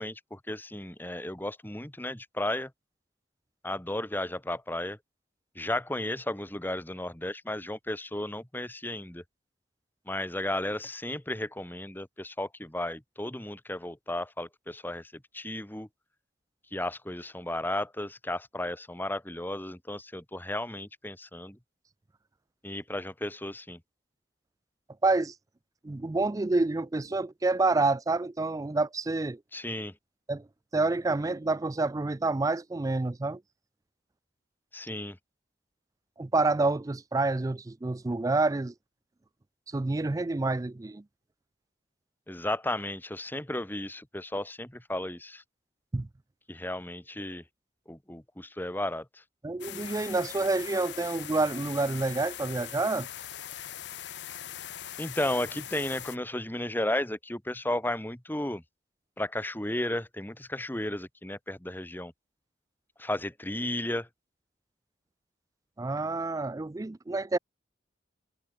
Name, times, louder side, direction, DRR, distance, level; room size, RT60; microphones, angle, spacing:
voice 1, 0.0-2.7 3.6-5.0 5.6-9.2 10.1-15.9 16.7-21.6 22.6-23.8 29.5-29.9 34.7-35.2 42.3-45.4 46.5-47.4 47.9-49.2 55.0-58.6 59.2-62.1 63.0-64.1, left 1 dB, 10° left, 1.7 m, -34 dB
voice 2, 25.0-25.3 25.8-29.4 30.3-30.5 30.7-33.4 36.2-38.7 39.7-41.0 45.9-46.1 49.4-53.1 65.8-67.4, right 3 dB, 20° right, 0.4 m, -28 dB
sound 1, 49.6-56.2, left 11 dB, 65° left, 0.8 m, -41 dB
head